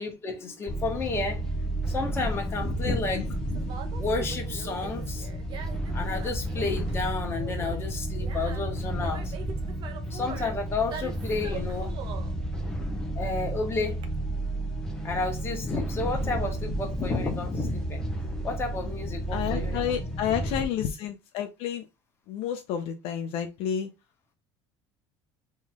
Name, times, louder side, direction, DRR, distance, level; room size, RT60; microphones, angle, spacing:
voice 1, 0.0-1.4 1.9-5.3 5.9-9.3 10.1-11.9 13.1-14.0 15.0-18.0 18.4-20.0, left 3 dB, 25° left, 1.5 m, -31 dB
sound 1, 0.7-20.6, right 1 dB, 5° left, 0.9 m, -32 dB
Conversation, 2.4-14.0, right 6 dB, 50° right, 0.9 m, -43 dB
voice 2, 19.3-21.9 22.3-23.9, left 9 dB, 65° left, 0.7 m, -30 dB
3.7 x 3.1 x 3.6 m
cardioid pair, 145°, 11 cm